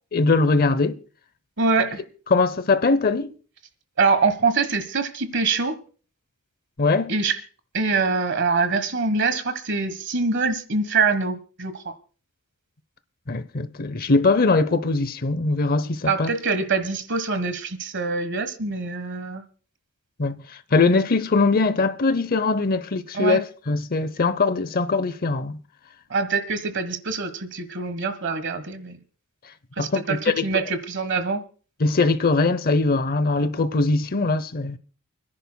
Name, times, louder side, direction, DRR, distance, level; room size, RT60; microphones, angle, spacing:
voice 1, 0.1-1.0 2.3-3.3 6.8-7.1 13.3-16.3 20.2-20.4 20.7-25.6 29.8-30.5 31.8-34.8, left 3 dB, 40° left, 0.7 m, -21 dB
voice 2, 1.6-2.0 4.0-5.8 7.1-7.4 7.7-11.9 16.0-19.4 23.1-23.4 26.1-29.0 29.8-31.4, right 4 dB, 55° right, 1.3 m, -24 dB
29.0 x 10.5 x 2.2 m
head